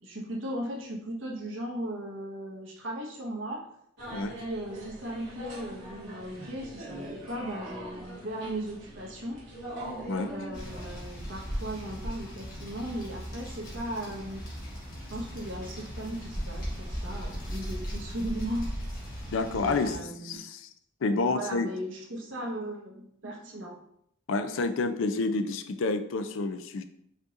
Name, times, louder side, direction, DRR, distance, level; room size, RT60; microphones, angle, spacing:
voice 1, 0.0-3.6 4.1-9.4 10.3-14.4 15.1-18.7 19.5-20.4 21.1-23.8, right 1 dB, 80° right, -1 dB, 1.2 m, -37 dB
sound 1, 4.0-11.0, right 1 dB, 60° right, 1.8 m, -42 dB
sound 2, 10.5-20.0, equal, 45° left, 1.4 m, -38 dB
voice 2, 19.3-20.0 20.2-20.7 21.0-21.7 24.3-26.8, left 3 dB, 80° left, 9 dB, 0.4 m, -29 dB
5.2 x 4.0 x 2.5 m, 0.73 s
head